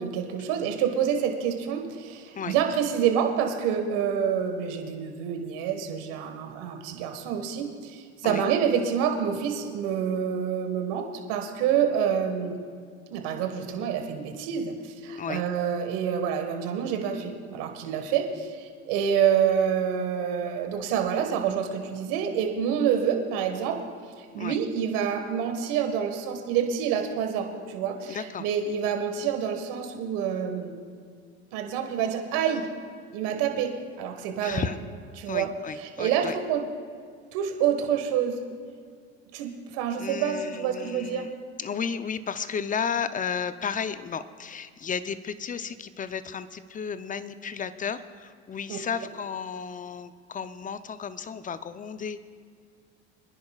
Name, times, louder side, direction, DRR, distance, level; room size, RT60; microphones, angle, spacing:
voice 1, 0.0-12.6 13.1-23.8 24.2-30.8 31.5-32.7 33.1-34.7 35.2-35.5 35.8-36.6 37.3-38.4 39.3-41.3 48.7-48.8, right 8 dB, 65° right, 4 dB, 1.7 m, -27 dB
voice 2, 28.1-28.5 34.4-34.8 35.3-36.4 40.0-41.3 41.6-52.2, left 6 dB, 25° left, 12 dB, 0.6 m, -33 dB
26.0 x 10.5 x 2.4 m, 2.1 s
hypercardioid pair, 75°, 33 cm